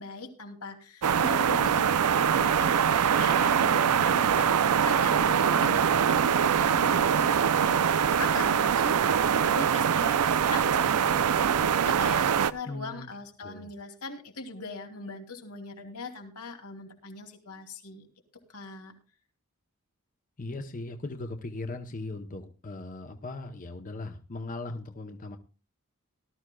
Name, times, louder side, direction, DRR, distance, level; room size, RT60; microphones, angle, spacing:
voice 1, 0.0-18.1 18.5-18.9, left 3 dB, 90° left, 3 dB, 2.6 m, -40 dB
sound 1, 1.0-12.5, right 8 dB, 90° right, 0.5 m, -23 dB
voice 2, 12.7-13.1 13.4-13.7 20.4-25.4, left 2 dB, 35° left, 6 dB, 0.8 m, -38 dB
18.5 x 12.5 x 2.3 m, 0.35 s
head